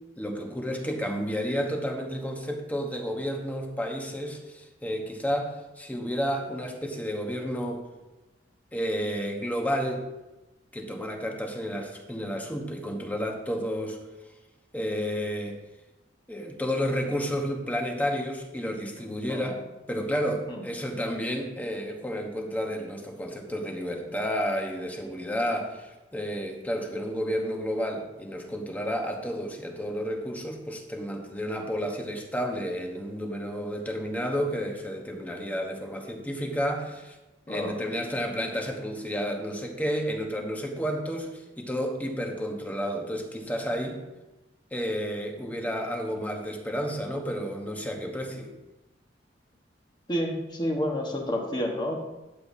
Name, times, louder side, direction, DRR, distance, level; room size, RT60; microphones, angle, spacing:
voice 1, 0.2-7.9 8.7-10.1 10.7-14.0 14.7-15.6 16.3-19.6 19.9-37.2 37.5-44.0 44.7-48.5, equal, 10° left, 2 dB, 1.1 m, -31 dB
voice 2, 50.1-52.0, equal, 25° left, 1 dB, 1.3 m, -29 dB
12.0 x 7.8 x 2.7 m, 1.0 s
head